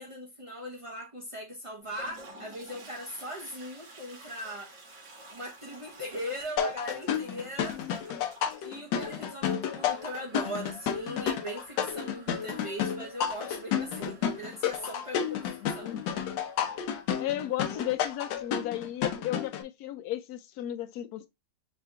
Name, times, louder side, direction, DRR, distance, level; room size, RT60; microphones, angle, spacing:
voice 1, 0.0-4.7 5.3-8.2 8.6-15.9, equal, 40° right, 0.4 m, -40 dB
Toilet flush, 1.8-18.6, right 2 dB, 75° right, 2.6 m, -53 dB
sound 1, 6.6-19.6, left 8 dB, 90° left, 1.4 m, -31 dB
voice 2, 15.6-16.0 17.2-21.3, left 13 dB, 70° left, 1.0 m, -34 dB
5.6 x 2.6 x 3.3 m
omnidirectional pair, 1.9 m